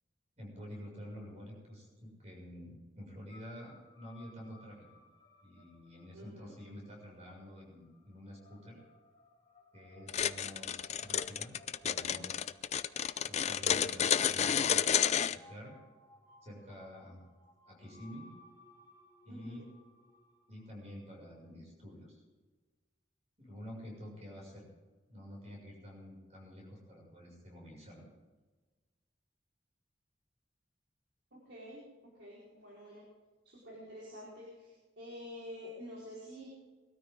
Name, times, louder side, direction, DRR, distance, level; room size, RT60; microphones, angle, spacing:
voice 1, 0.4-4.9 5.4-8.8 9.7-11.5 11.8-12.3 13.3-15.7 16.4-17.2 17.7-18.3 19.2-19.7 20.5-22.2 23.4-24.7 25.1-28.1, equal, 35° right, -1 dB, 6.8 m, -49 dB
sound 1, 3.3-21.4, left 2 dB, 20° left, 3.4 m, -63 dB
voice 2, 6.1-6.5 13.9-14.1 19.3-19.6 31.3-33.0 33.4-36.5, equal, 70° right, -7 dB, 4.9 m, -49 dB
sound 2, 10.1-15.4, left 9 dB, 35° left, 0.4 m, -30 dB
22.5 x 13.0 x 3.9 m, 1.3 s
head